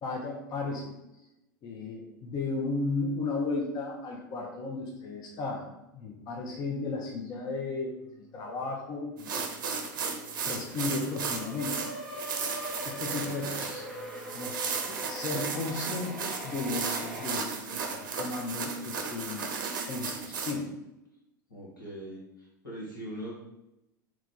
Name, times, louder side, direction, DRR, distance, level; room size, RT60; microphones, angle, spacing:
voice 1, 0.0-0.9 1.6-9.4 10.4-11.8 12.9-13.9 14.3-14.6 14.8-19.5 19.9-20.7, left 3 dB, 40° left, 0 dB, 0.7 m, -34 dB
sound 1, 8.0-8.8 9.2-17.4, equal, 5° left, 0.8 m, -43 dB
sound 2, 9.2-20.5, right 5 dB, 75° right, 0.5 m, -35 dB
voice 2, 13.0-13.4 21.5-23.5, right 1 dB, 90° left, -6 dB, 1.3 m, -42 dB
3.1 x 2.4 x 3.6 m, 0.90 s
hypercardioid pair, 85°, 11 cm